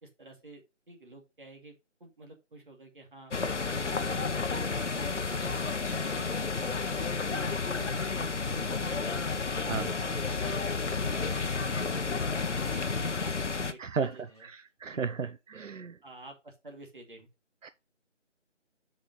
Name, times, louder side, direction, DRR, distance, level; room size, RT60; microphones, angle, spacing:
voice 1, 0.0-1.7 2.0-3.3 3.7-6.3 6.6-9.3 9.6-10.6 10.9-13.3 13.7-14.5 14.9-15.3 16.0-17.3, right 2 dB, 45° right, 2.5 m, -49 dB
sound 1, 3.3-13.7, left 4 dB, 70° left, 1.0 m, -31 dB
sound 2, 9.5-13.3 13.6-13.7 14.0-14.4, right 1 dB, 10° right, 3.6 m, -53 dB
voice 2, 13.8-14.1 14.5-16.0 17.6-17.7, right 5 dB, 90° right, 0.7 m, -33 dB
6.7 x 5.4 x 5.4 m
figure-of-eight pair, 170°, 37 cm